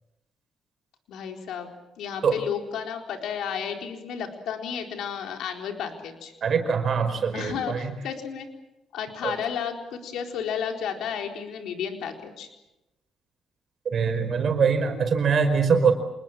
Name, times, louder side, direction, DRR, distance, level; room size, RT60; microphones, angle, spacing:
voice 1, 1.1-1.7 2.0-6.3 7.3-8.5 8.9-12.5, left 7 dB, 80° left, 4 dB, 4.2 m, -32 dB
voice 2, 6.4-7.9 9.2-9.3 13.8-15.9, right 6 dB, 55° right, 8 dB, 5.0 m, -23 dB
27.5 x 21.0 x 7.5 m, 0.95 s
cardioid pair, 90°, 0 cm